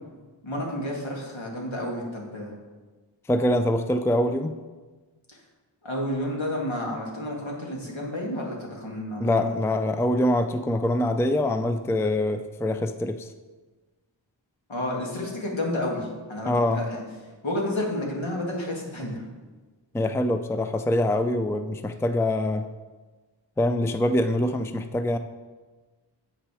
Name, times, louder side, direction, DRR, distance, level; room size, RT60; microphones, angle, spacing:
voice 1, 0.4-2.5 5.3-5.4 5.8-9.5 14.7-17.0 17.4-19.2, left 1 dB, 75° left, -2 dB, 2.1 m, -31 dB
voice 2, 3.3-4.6 9.2-13.3 16.5-16.8 19.9-22.7 23.6-25.2, left 1 dB, 5° left, 9 dB, 0.4 m, -24 dB
7.8 x 6.0 x 4.9 m, 1.3 s
cardioid pair, 40°, 46 cm